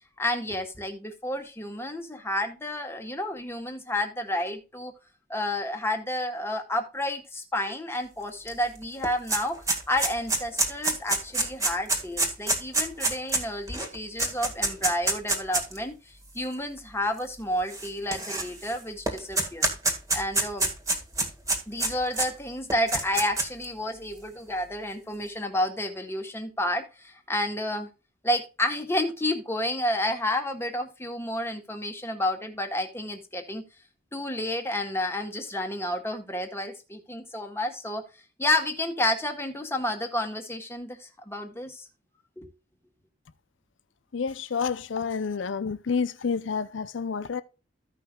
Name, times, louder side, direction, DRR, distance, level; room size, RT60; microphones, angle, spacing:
voice 1, 0.2-4.9 5.3-9.6 9.9-19.8 20.1-20.7 21.7-27.9 28.2-33.6 34.1-38.0 38.4-41.9 42.4-42.5, left 1 dB, 15° left, 1.6 m, -30 dB
sound 1, 8.5-8.6 8.8-15.8 16.5-16.6 17.7-18.7 19.1-22.3 22.7-23.6, right 2 dB, 15° right, 2.0 m, -26 dB
voice 2, 44.1-47.4, left 5 dB, 75° left, 0.6 m, -29 dB
15.5 x 5.7 x 2.3 m
head